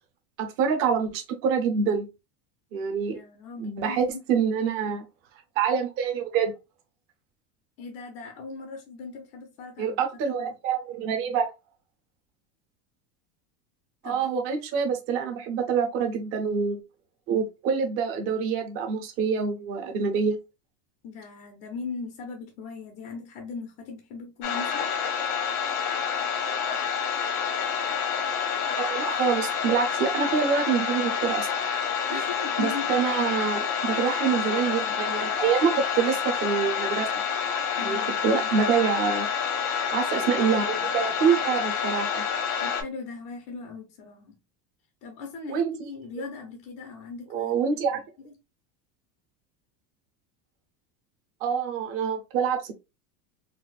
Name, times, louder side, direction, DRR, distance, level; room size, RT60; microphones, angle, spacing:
voice 1, 0.4-2.1 2.7-3.2 3.6-5.0 5.6-6.5 9.8-11.5 14.0-16.8 17.3-20.4 28.8-31.8 32.1-32.2 32.6-37.1 37.8-39.3 39.9-42.2 45.5-45.7 47.3-48.0 51.4-52.7, right 6 dB, 30° right, 0.5 m, -26 dB
voice 2, 3.1-4.4 7.8-10.0 10.4-10.5 14.0-14.3 21.0-24.9 32.1-32.9 37.8-38.5 42.6-44.4 45.0-48.3, left 4 dB, 30° left, 0.5 m, -39 dB
sound 1, 24.4-42.8, left 7 dB, 70° left, 1.1 m, -28 dB
4.1 x 2.0 x 2.3 m
supercardioid pair, 165°, 48 cm